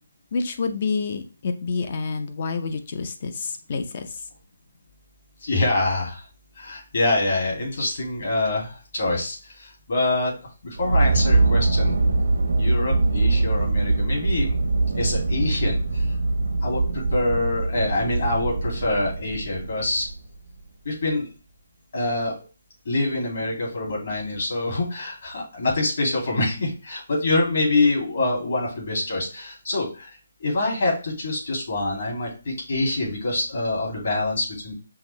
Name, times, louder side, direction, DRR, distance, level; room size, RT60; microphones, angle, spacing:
voice 1, 0.3-4.2, left 4 dB, 40° left, 8 dB, 0.6 m, -28 dB
voice 2, 5.4-6.2 6.6-12.0 12.6-14.6 14.9-16.0 16.6-20.1 20.8-21.3 21.9-22.3 22.8-30.1 30.4-34.7, left 2 dB, 55° left, -2 dB, 2.4 m, -25 dB
sound 1, 10.8-20.4, right 3 dB, 75° right, 0.9 m, -23 dB
5.7 x 2.7 x 3.2 m, 0.34 s
hypercardioid pair, 165°, 0 cm